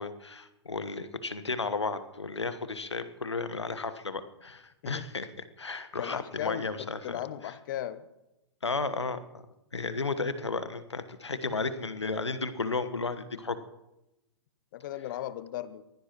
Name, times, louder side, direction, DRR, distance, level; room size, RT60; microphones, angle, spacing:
voice 1, 0.0-5.3 5.6-7.5 8.6-9.4 9.7-13.6, left 3 dB, 80° left, 11 dB, 1.3 m, -33 dB
voice 2, 6.0-6.7 7.0-8.0 11.4-11.6 14.7-15.8, left 12 dB, 45° left, 15 dB, 1.0 m, -36 dB
23.0 x 16.5 x 3.1 m, 0.91 s
figure-of-eight pair, 110°, 14 cm